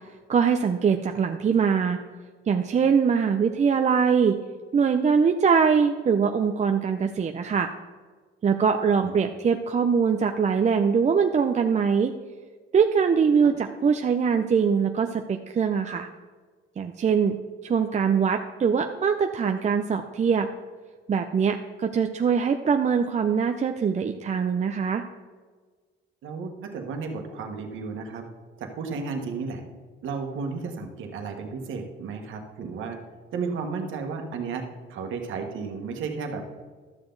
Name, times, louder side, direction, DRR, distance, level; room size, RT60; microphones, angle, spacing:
voice 1, 0.3-2.0 2.5-4.4 4.7-7.7 8.4-12.1 12.7-16.1 16.8-17.4 17.6-20.5 21.1-25.0, right 6 dB, 35° right, 6 dB, 0.5 m, -22 dB
voice 2, 26.2-28.2 28.6-29.6 30.0-33.0 33.3-34.6 34.9-36.4, right 5 dB, 80° right, 4 dB, 1.4 m, -33 dB
12.5 x 6.8 x 3.9 m, 1.4 s
cardioid pair, 90°, 20 cm